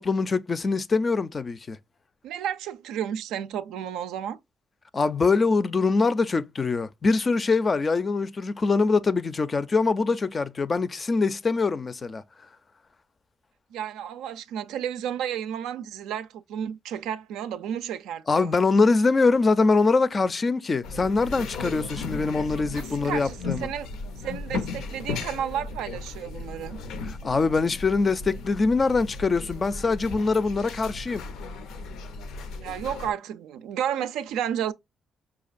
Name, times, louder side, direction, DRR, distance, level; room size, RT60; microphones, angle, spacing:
voice 1, 0.0-1.8 4.9-12.2 18.3-23.7 27.2-31.2, left 4 dB, 35° left, 0.4 m, -23 dB
voice 2, 2.2-4.4 13.7-18.6 22.7-23.9 24.2-26.8 32.6-34.7, right 9 dB, 90° right, 0.4 m, -32 dB
sound 1, 20.8-33.1, left 3 dB, 85° left, 0.5 m, -36 dB
5.1 x 2.3 x 2.4 m
cardioid pair, 90°, 0 cm